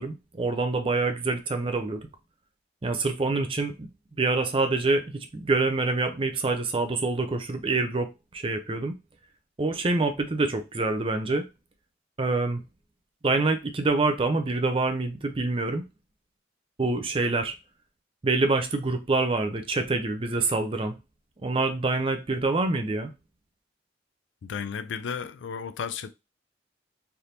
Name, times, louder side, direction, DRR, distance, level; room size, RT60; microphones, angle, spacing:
voice 1, 0.0-2.1 2.8-3.9 4.2-8.1 8.3-8.9 9.6-11.4 12.2-12.6 13.2-15.9 16.8-17.5 18.2-20.9 21.4-23.1, right 3 dB, 30° right, 0.5 m, -26 dB
voice 2, 24.4-26.1, left 6 dB, 75° left, 0.4 m, -33 dB
3.4 x 2.6 x 2.8 m
head